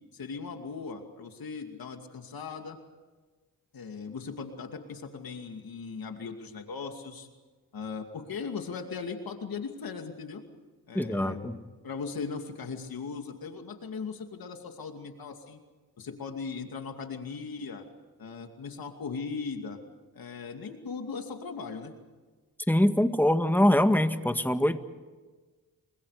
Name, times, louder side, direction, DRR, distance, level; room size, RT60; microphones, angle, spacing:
voice 1, 0.1-2.8 3.7-7.3 7.7-10.4 10.9-15.6 16.0-17.9 18.2-19.8 20.1-21.9, left 5 dB, 80° left, 5 dB, 2.6 m, -38 dB
voice 2, 10.9-11.6 22.7-24.8, left 1 dB, 5° left, 7 dB, 1.9 m, -23 dB
30.0 x 24.0 x 5.1 m, 1.3 s
cardioid pair, 70°, 35 cm